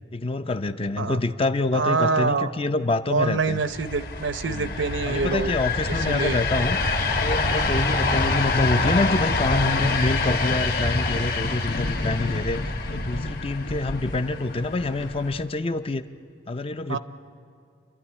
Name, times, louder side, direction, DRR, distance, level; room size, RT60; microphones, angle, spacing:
voice 1, 0.1-3.6 4.5-4.7 5.1-6.8 7.2-12.6 12.9-16.0 16.5-17.0, left 2 dB, 30° left, 10 dB, 0.5 m, -26 dB
voice 2, 1.7-2.5 3.1-5.5 5.9-6.4 16.9-17.0, right 4 dB, 70° right, 12 dB, 0.7 m, -25 dB
sound 1, 3.5-15.4, left 3 dB, 50° left, 1.5 m, -26 dB
sound 2, 9.3-15.3, left 1 dB, 85° left, 1.1 m, -34 dB
29.0 x 12.0 x 9.9 m, 2.4 s
head